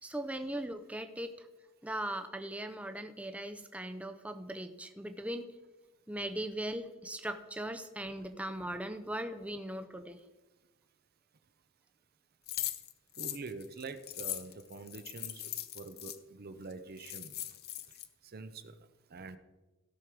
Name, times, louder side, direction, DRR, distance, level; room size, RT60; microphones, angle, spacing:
voice 1, 0.0-1.5 1.8-5.5 6.1-10.2, right 1 dB, 5° right, 8 dB, 0.6 m, -39 dB
sound 1, 12.5-16.2 16.7-16.8 17.0-18.1, left 13 dB, 50° left, 0.7 m, -40 dB
voice 2, 13.2-15.5 15.7-17.4 18.2-18.8 19.1-19.4, right 3 dB, 50° right, 10 dB, 0.7 m, -45 dB
16.5 x 6.4 x 4.7 m, 1.1 s
head